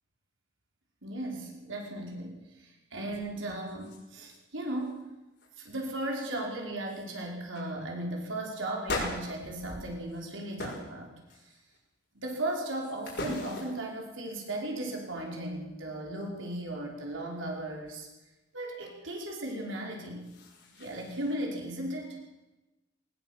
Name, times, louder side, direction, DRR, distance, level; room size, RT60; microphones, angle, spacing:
voice 1, 1.0-5.0 5.6-11.1 11.5-11.6 12.2-18.1 18.5-20.3 20.7-22.2, right 1 dB, 70° right, 0 dB, 5.3 m, -36 dB
sound 1, 3.1-3.2 3.6-4.4 4.6-5.0 5.4-5.8 6.4-6.5 6.9-7.1 7.5-7.7 8.8-10.2 10.6-10.9 11.3-11.8 12.3-14.0 20.0-21.3, left 2 dB, 60° left, 5.9 m, -40 dB
19.5 x 19.0 x 7.6 m, 1.0 s
head